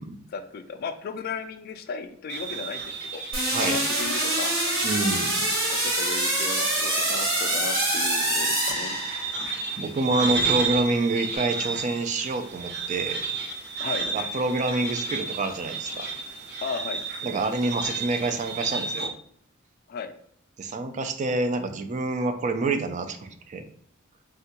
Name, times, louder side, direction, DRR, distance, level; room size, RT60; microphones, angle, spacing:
voice 1, 0.3-3.2 3.6-4.5 5.7-9.0 13.8-14.1 16.6-17.4 19.9-20.1, left 5 dB, 50° left, 9 dB, 0.3 m, -35 dB
sound 1, 2.3-19.1, right 4 dB, 55° right, 0.8 m, -33 dB
sound 2, 3.3-9.5, right 1 dB, 80° right, 1.2 m, -25 dB
voice 2, 4.8-5.5 9.8-13.2 14.1-16.1 17.2-19.1 20.6-23.6, right 2 dB, 35° right, 7 dB, 0.3 m, -27 dB
3.5 x 2.2 x 2.8 m, 0.64 s
head